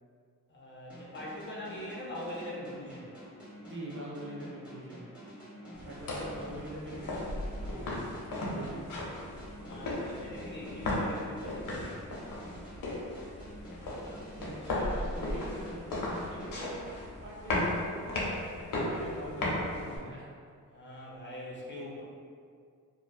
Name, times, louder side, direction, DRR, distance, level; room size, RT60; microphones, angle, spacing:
voice 1, 0.5-3.0 5.6-5.9 7.5-8.2 9.6-12.1 20.7-22.0, left 1 dB, 35° left, -5 dB, 0.6 m, -43 dB
sound 1, 0.9-17.5, equal, 5° right, 0.8 m, -49 dB
voice 2, 3.6-5.1 5.8-7.2 7.6-7.9 8.4-8.8 14.0-16.9 17.2-18.2 18.5-20.3, right 1 dB, 35° right, -5 dB, 0.5 m, -44 dB
sound 2, 5.8-20.0, left 1 dB, 75° left, 0.6 m, -36 dB
2.5 x 2.2 x 2.2 m, 2.2 s
cardioid pair, 75°, 34 cm